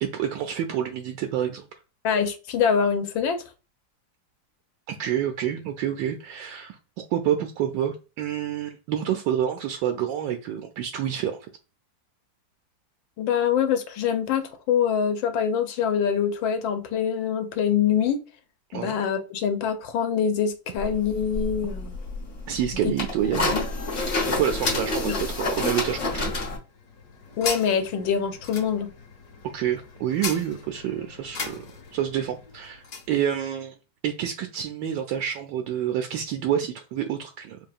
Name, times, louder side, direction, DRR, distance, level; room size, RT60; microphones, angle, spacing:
voice 1, 0.0-1.7 4.9-6.8 7.1-11.5 18.7-19.0 22.5-23.6 24.3-26.4 29.5-31.6 31.9-33.7 34.0-37.6, right 10 dB, 75° right, 1.2 m, -28 dB
voice 2, 2.0-3.4 13.2-18.2 18.7-21.9 23.5-23.6 25.0-25.2 27.4-28.9, left 7 dB, 85° left, 1.5 m, -24 dB
sound 1, 20.8-26.6, left 2 dB, 40° left, 1.4 m, -28 dB
sound 2, 26.6-33.1, left 5 dB, 60° left, 1.6 m, -38 dB
4.7 x 2.9 x 2.4 m
omnidirectional pair, 2.1 m